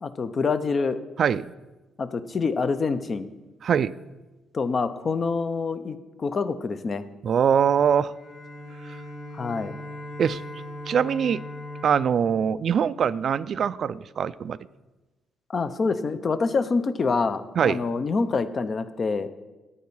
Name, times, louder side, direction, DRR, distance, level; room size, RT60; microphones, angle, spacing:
voice 1, 0.0-1.0 2.0-3.3 4.5-7.0 9.3-9.8 15.5-19.3, left 4 dB, 40° left, 12 dB, 0.6 m, -26 dB
voice 2, 3.6-3.9 7.2-8.1 8.9-9.0 10.2-10.4 10.9-11.4 11.8-14.6 17.6-17.8, right 7 dB, 55° right, 16 dB, 0.3 m, -23 dB
Bowed string instrument, 8.1-13.5, left 1 dB, 65° left, 2.2 m, -40 dB
9.4 x 8.4 x 5.5 m, 1.1 s
cardioid pair, 90°, 0 cm